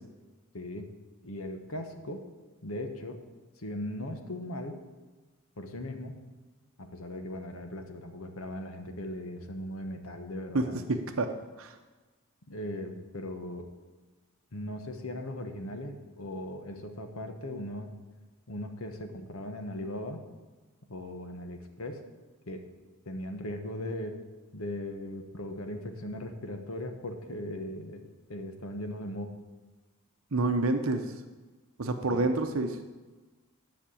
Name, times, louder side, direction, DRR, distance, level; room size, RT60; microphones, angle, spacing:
voice 1, 0.5-0.9 1.2-2.2 2.6-3.2 3.6-4.8 5.6-6.2 6.8-10.8 12.5-13.7 14.5-18.0 18.5-20.2 20.9-22.0 22.5-22.6 23.0-24.2 24.5-28.0 28.3-29.3 32.1-32.3, left 1 dB, 75° left, 6 dB, 1.3 m, -38 dB
voice 2, 10.5-11.7 30.3-31.1 31.8-32.8, right 2 dB, 70° right, 7 dB, 0.8 m, -29 dB
10.5 x 5.9 x 8.5 m, 1.3 s
head